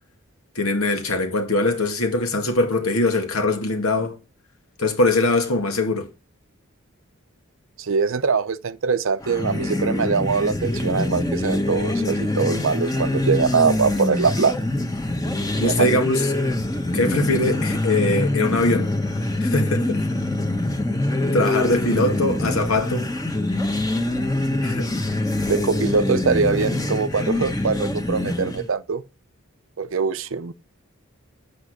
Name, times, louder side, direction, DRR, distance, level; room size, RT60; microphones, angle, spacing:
voice 1, 0.6-4.2 4.8-6.1 15.6-16.3 16.9-19.0 19.4-20.0 21.3-23.1 24.6-24.9, left 2 dB, 85° left, 2.0 m, -22 dB
voice 2, 7.8-14.6 15.6-15.9 25.5-29.0 29.8-30.5, right 5 dB, 65° right, 0.6 m, -22 dB
sound 1, 9.2-28.7, left 1 dB, 15° left, 1.1 m, -24 dB
9.2 x 8.3 x 6.5 m
head